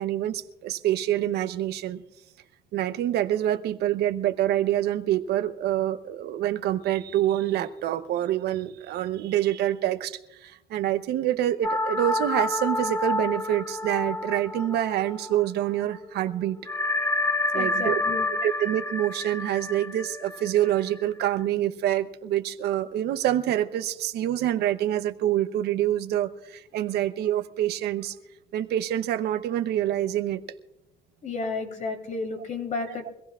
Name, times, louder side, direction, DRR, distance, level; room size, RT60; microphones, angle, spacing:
voice 1, 0.0-2.0 2.7-16.6 17.5-18.0 18.4-28.2 28.5-30.4 32.8-33.0, right 12 dB, 75° right, 10 dB, 0.9 m, -26 dB
sound 1, 11.6-15.6 15.9-16.0 16.7-21.3, left 2 dB, 15° left, 0.8 m, -29 dB
voice 2, 17.5-18.3 31.2-33.2, left 3 dB, 45° left, 4 dB, 2.8 m, -32 dB
24.5 x 15.5 x 2.4 m, 0.89 s
cardioid pair, 110°, 17 cm